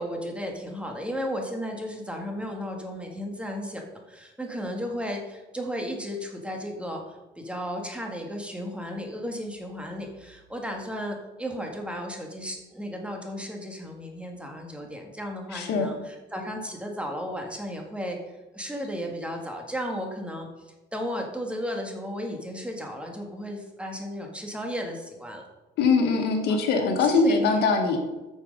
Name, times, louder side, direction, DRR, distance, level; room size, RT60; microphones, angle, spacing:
voice 1, 0.0-25.5 26.5-26.6 27.0-27.5, equal, 5° right, 2 dB, 1.9 m, -34 dB
voice 2, 15.5-15.9 25.8-28.0, left 4 dB, 75° left, 4 dB, 1.8 m, -22 dB
8.9 x 6.7 x 5.4 m, 1.1 s
cardioid pair, 110°, 17 cm